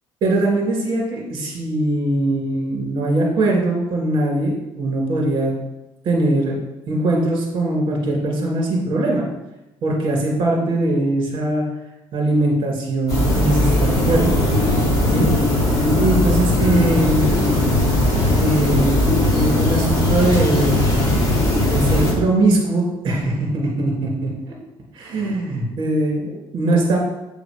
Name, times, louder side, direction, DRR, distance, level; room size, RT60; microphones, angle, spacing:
voice 1, 0.2-5.5 6.0-6.6 6.9-9.2 9.8-11.6 12.1-14.5 15.1-15.3 15.8-17.3 18.3-20.9 21.6-24.3 24.9-27.0, right 2 dB, 50° right, -1 dB, 2.3 m, -21 dB
sound 1, 13.1-22.1, left 1 dB, 35° left, 2.6 m, -18 dB
7.4 x 3.6 x 5.1 m, 0.93 s
cardioid pair, 150°, 10 cm